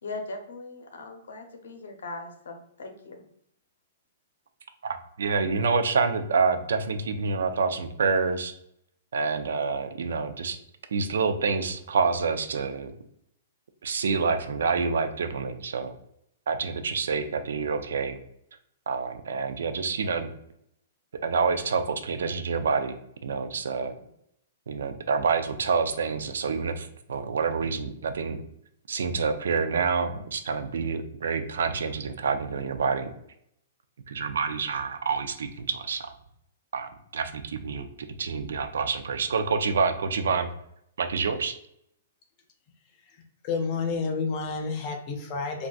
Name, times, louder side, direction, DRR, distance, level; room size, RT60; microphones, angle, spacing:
voice 1, 0.0-3.2, left 3 dB, 85° left, 5 dB, 0.7 m, -39 dB
voice 2, 5.2-8.5 9.1-10.6 10.9-12.9 13.8-15.9 16.5-18.2 18.9-20.3 21.2-23.9 24.7-28.4 28.9-33.1 34.1-36.1 36.7-37.9 38.2-40.5 41.0-41.6, right 5 dB, 75° right, 9 dB, 0.4 m, -27 dB
voice 3, 43.4-45.7, left 4 dB, 20° left, 2 dB, 0.4 m, -29 dB
3.9 x 2.3 x 2.3 m, 0.74 s
hypercardioid pair, 180°, 0 cm